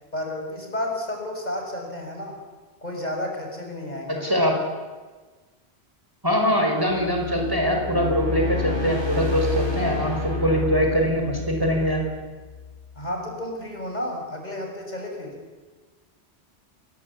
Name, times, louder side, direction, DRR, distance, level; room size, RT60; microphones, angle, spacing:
voice 1, 0.1-2.4 2.8-4.4 12.9-15.4, left 1 dB, 40° left, 1 dB, 6.6 m, -31 dB
voice 2, 4.2-4.5 6.2-12.0, equal, 20° right, 1 dB, 5.1 m, -23 dB
sound 1, 6.9-13.1, left 4 dB, 25° left, 7.3 m, -30 dB
28.0 x 22.0 x 8.6 m, 1.3 s
omnidirectional pair, 1.1 m